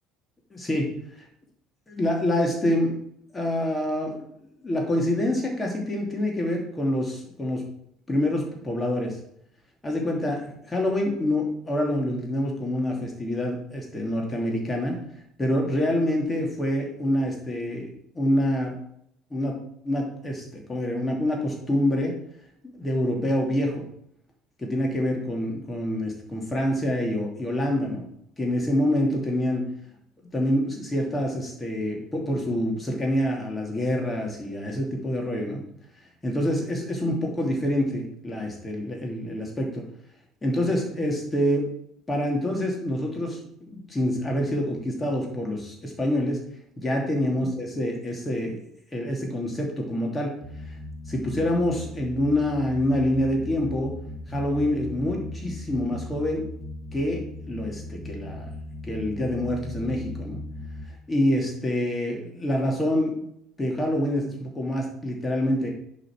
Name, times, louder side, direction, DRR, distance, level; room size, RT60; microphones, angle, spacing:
voice 1, 0.5-0.9 1.9-3.0 3.3-4.2 4.6-7.6 8.1-9.2 9.8-15.0 15.4-18.7 19.3-19.6 19.8-22.2 22.6-23.9 24.6-28.1 28.4-29.7 30.3-35.6 36.2-39.8 40.4-41.7 42.1-46.4 46.8-48.6 48.9-50.3 51.1-53.9 54.3-56.5 56.9-58.5 58.8-60.4 61.1-63.2 63.6-65.7, left 1 dB, 20° left, 0 dB, 2.6 m, -26 dB
sound 1, 50.4-60.9, left 2 dB, 15° right, 2.0 m, -38 dB
10.5 x 4.2 x 4.6 m, 0.72 s
figure-of-eight pair, 60°, 0 cm